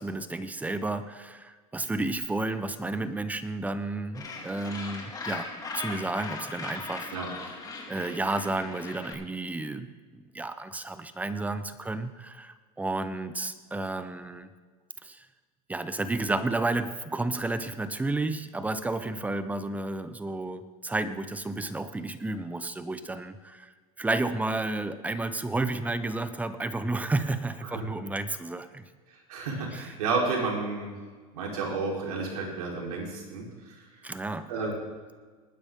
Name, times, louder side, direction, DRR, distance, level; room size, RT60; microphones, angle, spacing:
voice 1, 0.0-7.1 7.9-14.5 15.0-15.3 15.7-28.9 29.7-29.9 34.0-34.5, right 2 dB, 10° right, 12 dB, 0.8 m, -32 dB
Gull seagull, 4.1-9.1, left 3 dB, 20° left, 2.3 m, -39 dB
voice 2, 29.1-31.0 31.3-33.8 34.5-34.9, right 4 dB, 80° right, -2 dB, 4.0 m, -31 dB
19.5 x 9.8 x 3.7 m, 1.5 s
supercardioid pair, 120°, 19 cm